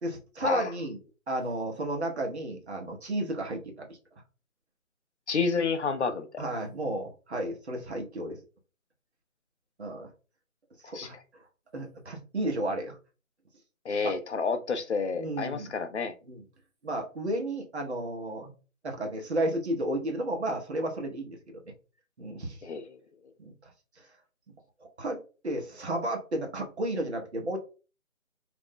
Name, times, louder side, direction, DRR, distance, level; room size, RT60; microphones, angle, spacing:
voice 1, 0.0-1.0 1.3-4.0 6.4-8.4 9.8-10.1 10.9-11.2 11.7-13.0 14.0-14.1 15.2-15.7 16.3-16.4 16.8-18.5 18.8-21.6 22.2-22.6 23.4-23.5 25.0-25.2 25.4-27.6, right 1 dB, 55° right, 0.8 m, -32 dB
voice 2, 5.3-6.4 10.8-11.1 13.9-16.1 22.6-22.8, left 5 dB, 60° left, 0.5 m, -29 dB
2.5 x 2.1 x 3.5 m
figure-of-eight pair, 175°, 40 cm